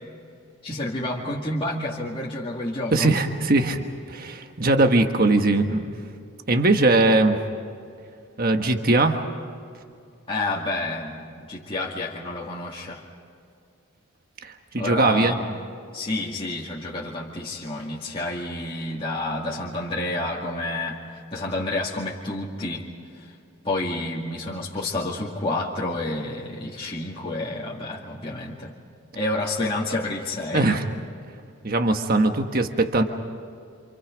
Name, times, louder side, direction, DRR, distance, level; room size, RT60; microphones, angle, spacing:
voice 1, 0.6-3.1 10.3-13.0 14.8-15.5 15.9-22.9 23.2-23.3 23.6-28.7 29.1-30.7, left 2 dB, 25° left, -5 dB, 2.2 m, -29 dB
voice 2, 2.9-3.8 4.1-5.9 6.5-7.4 8.4-9.2 14.4-15.4 30.5-30.8 31.6-33.0, right 2 dB, 45° right, 5 dB, 1.4 m, -20 dB
28.0 x 28.0 x 5.2 m, 2.4 s
head